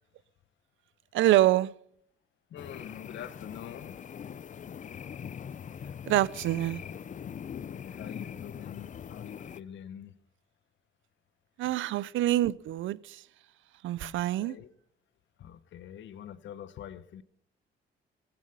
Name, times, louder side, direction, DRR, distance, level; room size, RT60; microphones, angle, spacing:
voice 1, 1.1-1.7 6.1-6.8 11.6-13.2 13.8-14.6, right 14 dB, 80° right, 0.5 m, -26 dB
voice 2, 2.5-4.0 7.6-10.2 11.6-11.7 14.0-14.7 15.4-17.2, left 10 dB, 70° left, 0.9 m, -45 dB
sound 1, 2.6-9.6, left 8 dB, 40° left, 0.5 m, -42 dB
15.5 x 15.0 x 5.5 m
cardioid pair, 90°, 20 cm